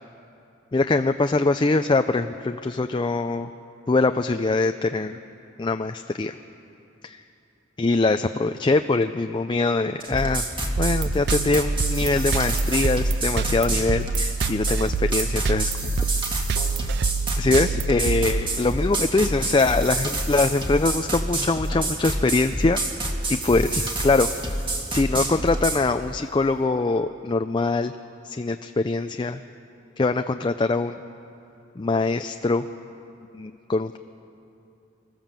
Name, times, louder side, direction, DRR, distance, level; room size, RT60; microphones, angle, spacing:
voice 1, 0.7-3.5 3.9-5.2 5.6-6.3 7.0-7.2 7.8-10.4 10.8-15.9 16.2-16.7 17.4-22.8 23.3-24.3 24.9-27.9 28.2-29.4 30.0-31.0 31.8-32.7 33.3-34.0, left 3 dB, 25° left, 7 dB, 0.4 m, -23 dB
sound 1, 10.0-25.8, right 1 dB, 25° right, 1.9 m, -28 dB
sound 2, 10.8-18.9, right 5 dB, 60° right, 0.4 m, -27 dB
25.0 x 14.0 x 7.4 m, 2.8 s
head